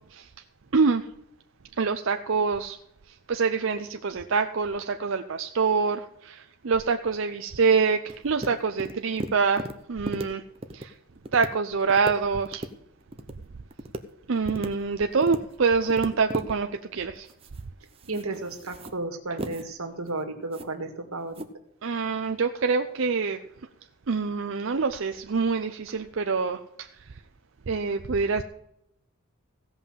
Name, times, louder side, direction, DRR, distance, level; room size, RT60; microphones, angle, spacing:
voice 1, 1.8-2.8 3.3-10.4 10.7-10.9 11.3-12.6 14.3-17.3 21.8-23.4 24.1-26.9 27.7-28.4, right 5 dB, 65° right, 6 dB, 0.6 m, -25 dB
sound 1, 8.1-8.5 8.8-9.7 10.1-10.3 10.5-10.8 11.2-11.5 11.8-12.1 12.4-12.7 13.0-13.3 13.7-14.0 14.4-14.7 15.1-15.4 15.8-16.5 17.2-17.6 17.9-19.0 19.4-19.7 20.1-20.2 20.5-20.7 21.3-21.5, right 1 dB, 25° right, 0.8 m, -35 dB
voice 2, 18.1-21.5, right 2 dB, 90° right, 6 dB, 2.0 m, -33 dB
16.5 x 5.6 x 7.3 m, 0.78 s
head